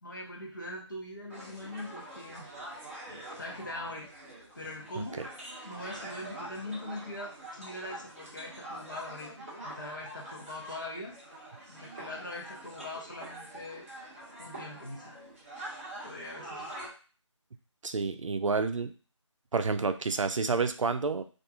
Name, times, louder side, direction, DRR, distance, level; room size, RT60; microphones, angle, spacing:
voice 1, 0.0-2.6 3.1-4.1 4.5-5.2 5.6-11.1 11.7-13.9 14.4-15.2 16.0-16.7, left 1 dB, 40° left, -2 dB, 0.7 m, -42 dB
sound 1, 1.3-16.9, right 1 dB, 25° right, 0.9 m, -45 dB
voice 2, 5.0-5.3 17.8-18.9 19.5-21.2, right 4 dB, 85° right, 9 dB, 0.4 m, -29 dB
2.9 x 2.4 x 2.3 m, 0.37 s
figure-of-eight pair, 175°, 16 cm